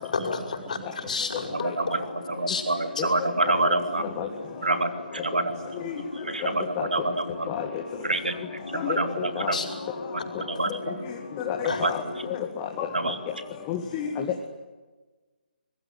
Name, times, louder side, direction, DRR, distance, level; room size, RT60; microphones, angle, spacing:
voice 1, 0.1-1.5 2.5-2.6 9.5-9.7 11.6-11.8, left 4 dB, 50° left, 5 dB, 5.8 m, -30 dB
sound 1, 1.3-12.4, left 2 dB, 75° left, 2.9 m, -40 dB
voice 2, 1.5-4.0 4.6-7.5 8.0-9.8 10.1-11.1 11.6-12.1 12.9-13.2, right 2 dB, 70° right, 8 dB, 3.2 m, -28 dB
voice 3, 8.7-9.5 11.4-12.0 12.3-12.9 13.7-14.3, left 9 dB, 20° left, 3 dB, 2.2 m, -30 dB
26.0 x 21.5 x 9.6 m, 1.3 s
figure-of-eight pair, 145°, 5 cm